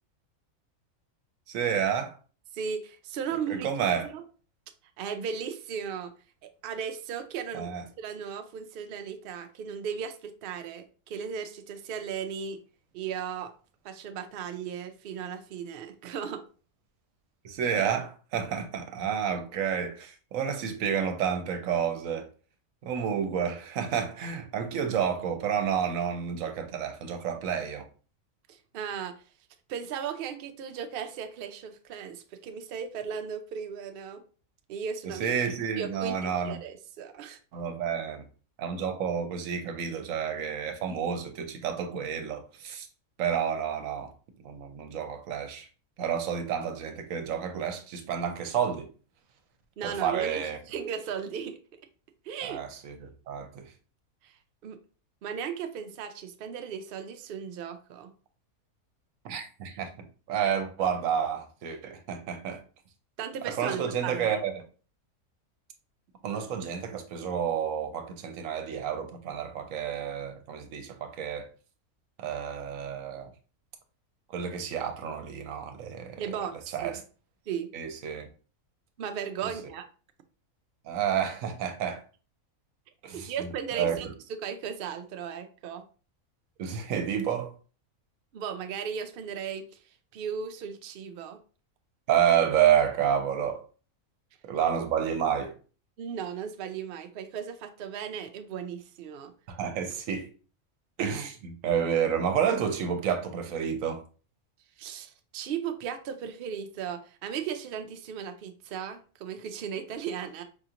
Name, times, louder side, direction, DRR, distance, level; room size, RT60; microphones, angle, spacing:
voice 1, 1.5-2.1 3.5-4.1 7.5-7.8 17.4-22.3 22.8-27.8 35.0-36.6 37.5-38.2 38.6-42.9 43.2-44.1 44.4-45.7 46.0-48.9 49.8-50.6 52.4-53.6 59.2-59.9 60.3-62.6 63.4-64.6 66.2-71.5 72.2-73.3 74.3-76.2 76.7-77.0 77.7-78.3 80.9-82.0 83.0-84.0 86.6-87.5 92.1-93.6 94.4-95.5 99.5-100.3 101.0-104.0, right 8 dB, 70° right, 1.0 m, -30 dB
voice 2, 2.5-3.7 4.0-4.2 5.0-6.1 6.4-7.7 8.0-12.6 12.9-13.5 13.8-16.4 28.5-29.2 29.7-34.2 34.7-35.4 35.8-37.4 49.8-51.6 52.2-52.6 54.2-54.4 54.6-54.8 55.2-58.1 63.2-64.4 76.2-77.0 77.5-77.7 79.0-79.9 83.1-84.1 84.4-85.8 88.3-89.7 90.1-91.4 96.0-99.3 104.8-110.4, right 7 dB, 85° right, 0.5 m, -36 dB
4.8 x 2.8 x 2.5 m
omnidirectional pair, 1.5 m